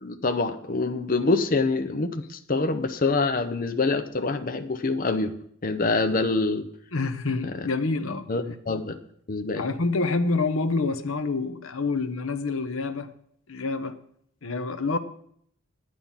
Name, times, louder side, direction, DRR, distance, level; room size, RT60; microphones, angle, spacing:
voice 1, 0.0-5.3 5.6-6.7 7.4-7.7 8.3-9.0 9.3-9.6, left 3 dB, 40° left, 0.7 m, -25 dB
voice 2, 6.9-8.3 9.6-13.1 13.5-14.0 14.4-15.0, left 3 dB, 70° left, 0.9 m, -27 dB
10.0 x 9.1 x 5.6 m
head